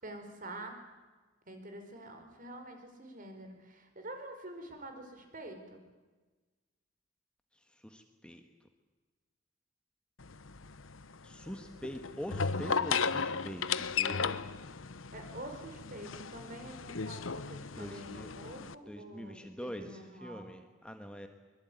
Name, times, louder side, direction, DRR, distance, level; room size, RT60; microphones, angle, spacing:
voice 1, 0.0-0.8 1.5-5.8 15.1-20.5, right 1 dB, 45° right, 5 dB, 4.9 m, -47 dB
voice 2, 7.7-8.4 11.2-13.6 14.0-14.4 17.7-18.3 18.9-21.3, equal, 5° left, 5 dB, 1.5 m, -44 dB
sound 1, 10.2-18.7, left 5 dB, 85° left, 1.0 m, -36 dB
24.5 x 22.5 x 9.4 m, 1.3 s
head